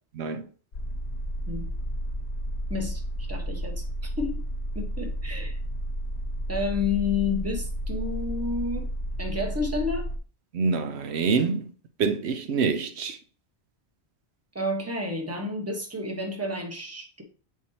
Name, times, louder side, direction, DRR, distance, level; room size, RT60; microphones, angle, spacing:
voice 1, 0.1-0.5 10.5-11.7 12.0-13.2, right 5 dB, 80° right, 0.9 m, -26 dB
sound 1, 0.7-10.2, equal, 80° left, 1.2 m, -32 dB
voice 2, 2.7-3.0 3.3-3.9 4.2-4.4 4.7-5.6 6.5-8.9 9.2-10.1 14.5-17.2, left 3 dB, 15° right, 1.2 m, -30 dB
7.3 x 4.7 x 2.8 m
omnidirectional pair, 1.1 m